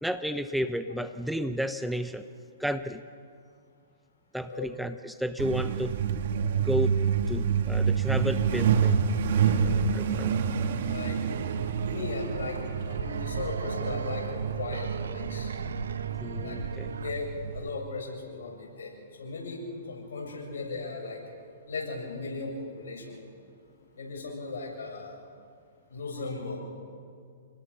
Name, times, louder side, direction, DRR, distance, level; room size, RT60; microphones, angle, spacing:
voice 1, 0.0-2.3 2.6-3.0 4.3-6.0 6.6-7.0 7.3-9.0 9.9-10.3 16.2-17.0, equal, ahead, 10 dB, 0.8 m, -32 dB
Truck, 5.4-17.7, right 6 dB, 60° right, 1.7 m, -28 dB
voice 2, 9.3-9.8 10.8-11.2 11.8-15.5 16.4-16.6 17.0-21.2 21.7-23.2 24.0-25.2 25.9-26.6, left 3 dB, 75° left, -1 dB, 7.5 m, -37 dB
sound 1, 11.3-17.1, right 6 dB, 80° right, 1.3 m, -38 dB
28.5 x 20.0 x 5.7 m, 2.3 s
hypercardioid pair, 125°, 0 cm